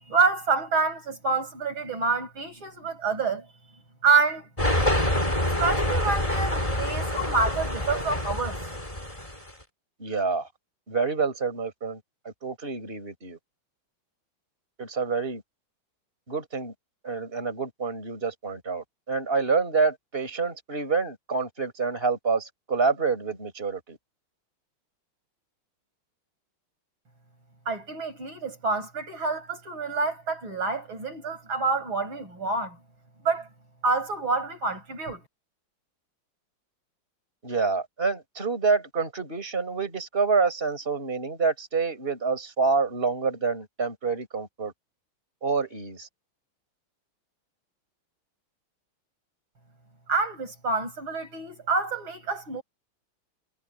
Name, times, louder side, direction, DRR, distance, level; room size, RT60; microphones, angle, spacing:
voice 1, 0.1-3.5 4.0-4.5 5.6-8.6 27.7-32.8 33.2-33.5 33.8-35.2 50.1-52.6, right 4 dB, 65° right, 8.4 m, -27 dB
sound 1, 4.6-9.5, left 1 dB, 15° left, 5.4 m, -26 dB
voice 2, 10.0-10.5 10.9-12.0 12.2-13.4 14.8-15.4 16.3-16.7 17.0-24.0 37.4-44.7 45.4-46.1, right 4 dB, 25° right, 5.1 m, -27 dB
omnidirectional pair, 2.4 m